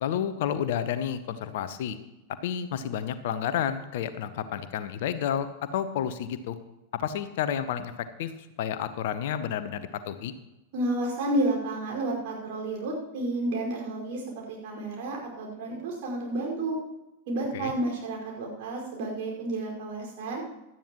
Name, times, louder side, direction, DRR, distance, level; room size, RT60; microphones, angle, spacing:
voice 1, 0.0-2.0 2.4-6.6 6.9-8.3 8.6-10.3 17.5-17.7, left 9 dB, 55° left, 12 dB, 0.8 m, -30 dB
voice 2, 10.7-16.8 17.3-20.4, right 2 dB, 50° right, -2 dB, 5.2 m, -31 dB
17.5 x 12.5 x 3.1 m, 0.95 s
figure-of-eight pair, 90°, 0 cm